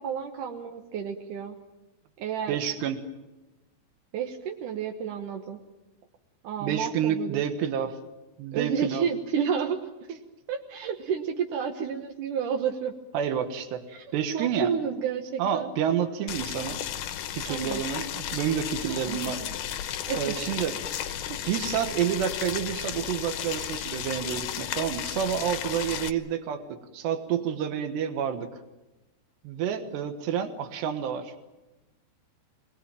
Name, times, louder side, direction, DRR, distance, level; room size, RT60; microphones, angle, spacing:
voice 1, 0.0-1.6 2.2-2.6 4.1-5.6 6.4-7.4 8.5-9.8 10.1-10.2 10.5-12.9 13.9-15.7 17.5-17.8 18.9-19.6 20.1-20.3, right 7 dB, 65° right, 3 dB, 2.4 m, -31 dB
voice 2, 2.5-3.0 6.6-8.0 8.4-9.0 13.1-13.8 14.1-14.7 15.4-16.8 17.3-19.4 20.1-20.8 21.5-28.5 29.5-31.3, right 8 dB, 90° right, 7 dB, 3.6 m, -29 dB
Boiling, 16.3-26.1, left 10 dB, 70° left, 2.2 m, -34 dB
26.0 x 20.5 x 9.0 m, 1.0 s
omnidirectional pair, 4.7 m